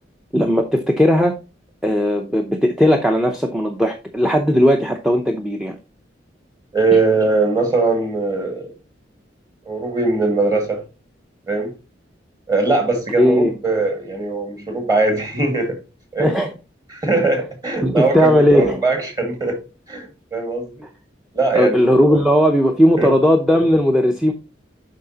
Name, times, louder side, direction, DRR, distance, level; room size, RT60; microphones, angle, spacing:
voice 1, 0.3-1.3 1.8-5.8 6.9-7.0 13.2-13.5 16.2-16.5 17.8-18.8 21.5-24.3, equal, ahead, 0.6 m, -16 dB
voice 2, 6.7-8.7 9.7-10.8 11.5-11.7 12.5-15.8 16.1-16.3 16.9-19.6 19.9-20.7 21.3-21.8 22.1-22.2 23.0-23.1, right 3 dB, 20° right, 1.8 m, -20 dB
7.4 x 5.7 x 2.8 m
head